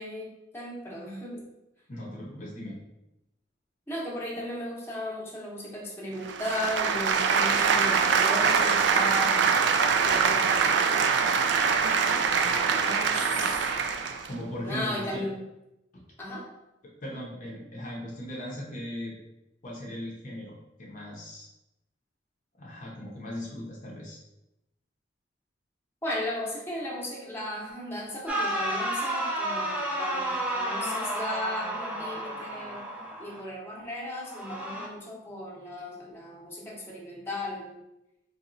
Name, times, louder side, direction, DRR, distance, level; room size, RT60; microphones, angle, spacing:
voice 1, 0.0-1.4 3.9-9.5 10.0-10.9 12.6-13.4 14.6-15.4 16.2-16.4 26.0-32.9 33.2-37.8, left 1 dB, 15° left, -5 dB, 0.8 m, -36 dB
voice 2, 1.9-2.8 14.3-15.2 17.0-19.1 19.6-20.5 20.8-21.5 22.6-24.2, equal, 45° left, -3 dB, 0.7 m, -38 dB
sound 1, 6.3-14.3, right 6 dB, 70° right, 0.3 m, -24 dB
sound 2, 28.3-33.4 34.3-34.9, right 1 dB, 5° right, 0.5 m, -31 dB
4.0 x 2.9 x 2.6 m, 0.91 s
head